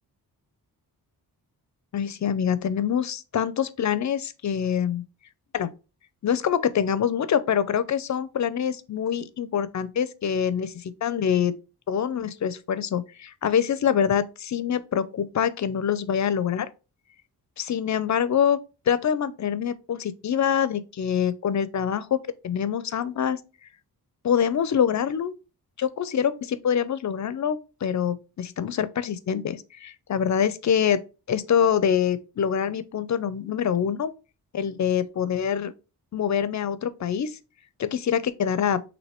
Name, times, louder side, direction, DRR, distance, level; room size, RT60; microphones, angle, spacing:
voice 1, 1.9-5.0 5.5-5.7 6.2-11.5 11.9-16.7 17.6-18.6 18.9-22.2 22.4-23.4 24.2-25.3 25.8-31.0 31.3-34.1 34.5-35.7 36.1-37.4 37.8-38.8, left 8 dB, 50° left, 0.4 m, -25 dB
6.3 x 2.7 x 2.9 m
wide cardioid pair, 130°, 38 cm